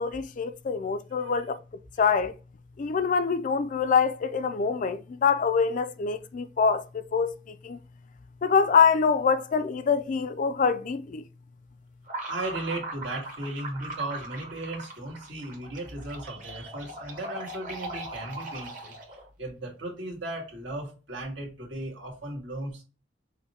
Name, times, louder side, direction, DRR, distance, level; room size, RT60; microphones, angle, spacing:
voice 1, 0.0-1.6 2.0-2.4 2.8-7.8 8.4-11.2, left 6 dB, 45° left, 0.4 m, -25 dB
sound 1, 12.1-19.3, right 1 dB, 45° right, 1.2 m, -39 dB
voice 2, 12.3-18.9 19.4-22.8, right 2 dB, 80° right, 1.8 m, -36 dB
5.7 x 2.2 x 4.1 m
head